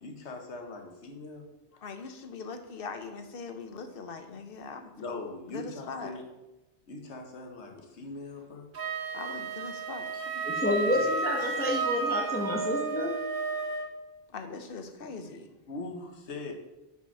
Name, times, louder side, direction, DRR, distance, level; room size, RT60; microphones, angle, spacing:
voice 1, 0.0-1.4 5.0-6.2 6.9-8.7 11.4-11.5 15.7-16.5, left 2 dB, 90° left, 3 dB, 1.3 m, -41 dB
voice 2, 1.7-4.9 5.5-6.2 9.1-11.0 14.3-15.5, left 4 dB, 60° left, 7 dB, 0.9 m, -41 dB
Wind instrument woodwind instrument, 8.7-13.9, right 4 dB, 55° right, 1.0 m, -32 dB
voice 3, 10.5-13.2, left 1 dB, 10° left, 0 dB, 0.8 m, -29 dB
5.6 x 5.0 x 5.5 m, 0.98 s
omnidirectional pair, 1.1 m